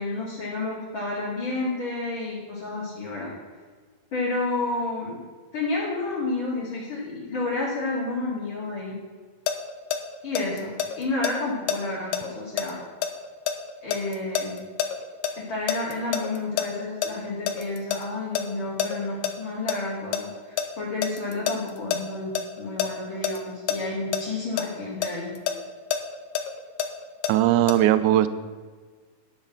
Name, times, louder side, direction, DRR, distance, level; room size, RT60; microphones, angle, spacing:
voice 1, 0.0-3.3 4.1-5.2 5.5-8.9 10.2-12.8 13.8-14.6 15.4-22.3 22.6-25.3, left 2 dB, 40° left, -7 dB, 2.7 m, -30 dB
sound 1, 9.5-15.3 15.7-18.0 18.3-18.4 18.8-19.3 19.7-22.9 23.2-23.4 23.7-23.8 24.1-24.2 24.6-27.3 27.7-27.8, left 9 dB, 90° left, 2.4 m, -27 dB
voice 2, 27.3-28.3, right 13 dB, 80° right, 13 dB, 1.9 m, -19 dB
10.5 x 6.6 x 7.3 m, 1.5 s
omnidirectional pair, 3.8 m